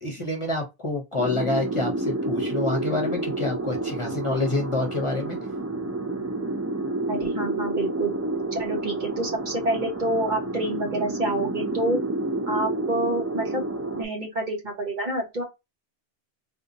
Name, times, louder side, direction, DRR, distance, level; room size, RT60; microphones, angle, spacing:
voice 1, 0.0-5.4, left 2 dB, 35° left, 0.8 m, -27 dB
sound 1, 1.2-14.0, right 2 dB, 25° right, 0.3 m, -29 dB
voice 2, 7.1-8.1 8.5-12.0 12.5-13.6 13.9-15.4, right 1 dB, 50° right, 1.3 m, -28 dB
3.7 x 2.8 x 2.6 m
omnidirectional pair, 1.1 m